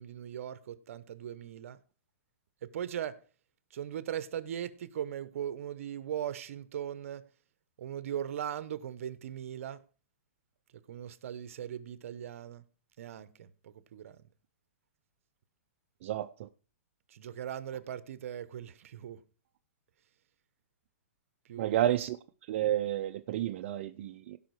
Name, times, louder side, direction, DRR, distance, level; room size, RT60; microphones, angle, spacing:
voice 1, 0.0-1.8 2.6-3.2 3.7-7.2 7.8-9.8 10.9-12.6 13.0-14.3 17.1-19.2 21.5-21.8, right 10 dB, 65° right, 0.9 m, -39 dB
voice 2, 16.0-16.5 21.6-22.2 22.5-24.4, right 12 dB, 50° right, 0.5 m, -31 dB
16.5 x 5.7 x 4.7 m
hypercardioid pair, 145°, 8 cm